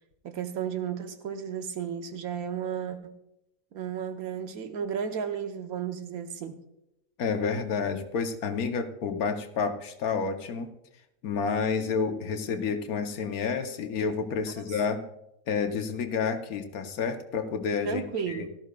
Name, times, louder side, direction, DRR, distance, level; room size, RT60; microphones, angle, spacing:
voice 1, 0.2-3.2 3.7-6.6 14.6-15.0 17.8-18.5, right 7 dB, 85° right, 7 dB, 1.4 m, -33 dB
voice 2, 7.2-10.7 11.2-15.0 15.5-18.5, left 5 dB, 85° left, 7 dB, 1.4 m, -29 dB
17.5 x 13.0 x 2.3 m, 0.85 s
omnidirectional pair, 1.5 m